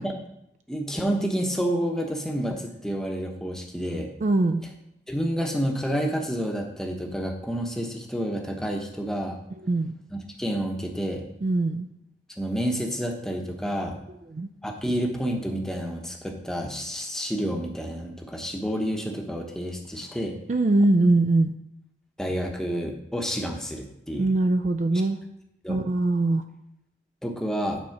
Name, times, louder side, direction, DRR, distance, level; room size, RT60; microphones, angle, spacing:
voice 1, 0.7-4.1 5.1-9.4 10.1-11.2 12.4-14.0 14.6-20.4 22.2-24.3 25.6-25.8 27.2-27.8, equal, 5° left, 2 dB, 0.9 m, -29 dB
voice 2, 4.2-4.6 9.6-10.0 11.4-11.9 14.3-14.5 20.5-21.5 24.2-25.2 25.7-26.4, right 2 dB, 40° right, 8 dB, 0.3 m, -22 dB
9.1 x 4.2 x 5.8 m, 0.82 s
head